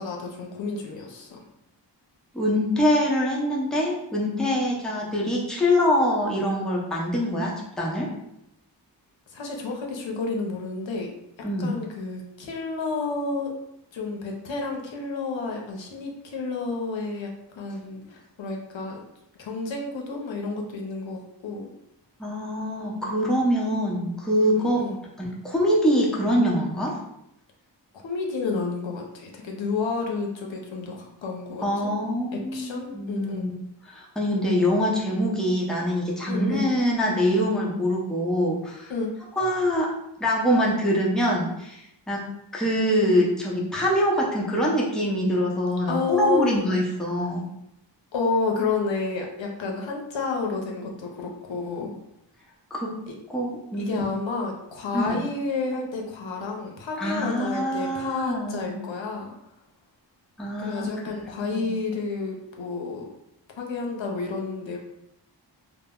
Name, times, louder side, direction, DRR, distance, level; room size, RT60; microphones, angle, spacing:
voice 1, 0.0-1.4 9.3-11.1 11.6-13.5 13.9-17.3 17.5-19.0 19.4-21.7 24.5-25.0 28.0-31.9 32.3-33.5 36.3-36.7 38.9-39.1 45.9-46.6 48.1-51.9 53.1-53.2 53.8-59.3 60.6-63.1 63.6-64.8, left 4 dB, 85° left, 1 dB, 0.6 m, -30 dB
voice 2, 2.3-8.1 11.4-11.8 22.2-24.9 25.2-27.0 31.6-33.5 33.9-38.9 39.4-47.5 52.7-53.1 53.3-54.0 54.9-55.2 57.0-58.8 60.4-60.9 61.1-61.7, equal, ahead, -4 dB, 0.6 m, -24 dB
2.0 x 2.0 x 3.5 m, 0.82 s
wide cardioid pair, 55°, 44 cm